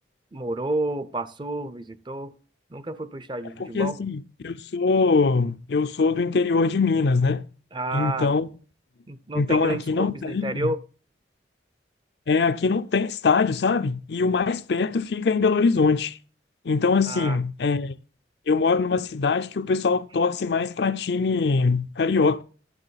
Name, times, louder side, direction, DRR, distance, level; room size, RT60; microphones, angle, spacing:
voice 1, 0.3-2.4 2.7-4.0 7.7-8.3 9.1-10.8 17.1-17.4, right 2 dB, 25° right, 0.5 m, -30 dB
voice 2, 3.7-7.4 7.9-8.5 9.3-10.5 12.3-16.2 16.7-17.9 18.5-22.4, left 4 dB, 65° left, 0.5 m, -22 dB
12.5 x 7.1 x 4.0 m
head